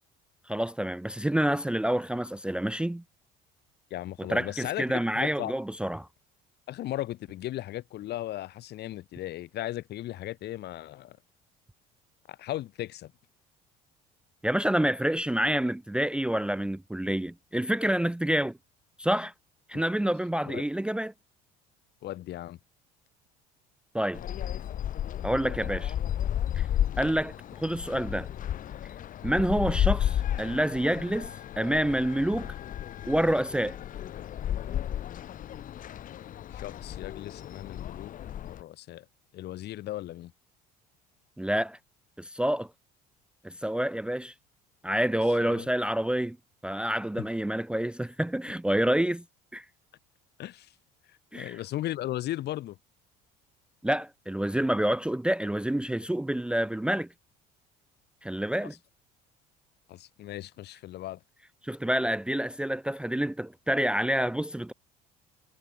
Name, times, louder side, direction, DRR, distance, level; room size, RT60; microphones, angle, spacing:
voice 1, 0.5-3.0 4.3-6.1 14.4-18.6 19.0-19.3 19.7-21.1 23.9-24.2 25.2-25.9 26.5-26.7 27.0-28.3 29.2-32.5 33.1-33.8 41.4-41.8 42.2-42.7 43.4-44.3 44.8-46.4 46.6-49.2 49.5-49.6 51.3-51.6 53.8-57.1 58.2-58.7 61.6-64.7, right 1 dB, 5° right, 0.6 m, -28 dB
voice 2, 3.9-4.9 5.2-5.5 6.7-11.2 12.3-13.1 20.5-20.6 22.0-22.6 36.5-39.1 39.3-40.3 45.4-45.7 47.2-47.3 50.4-50.7 51.1-52.8 58.6-58.8 59.9-61.2, left 14 dB, 60° left, 2.3 m, -37 dB
sound 1, 24.1-38.6, left 11 dB, 45° left, 0.8 m, -33 dB
supercardioid pair, 85°, 19 cm